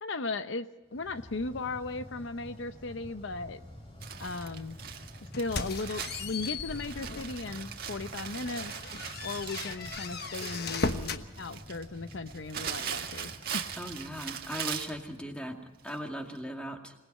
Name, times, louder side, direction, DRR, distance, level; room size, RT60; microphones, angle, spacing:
voice 1, 0.0-3.6 4.2-4.8 5.2-8.7 9.2-13.7, left 3 dB, 65° left, 10 dB, 0.7 m, -37 dB
sound 1, 0.9-15.9, equal, 25° left, 4.7 m, -49 dB
Crumpling crinkling, 4.0-15.0 15.9-16.0 16.3-16.4, right 8 dB, 45° right, 1.8 m, -40 dB
sound 2, 5.3-7.4 7.9-8.0 8.4-11.3, left 4 dB, 50° left, 1.2 m, -37 dB
voice 2, 13.8-15.6 15.8-16.9, equal, 5° left, 3 dB, 2.3 m, -38 dB
27.0 x 19.0 x 5.5 m, 1.1 s
head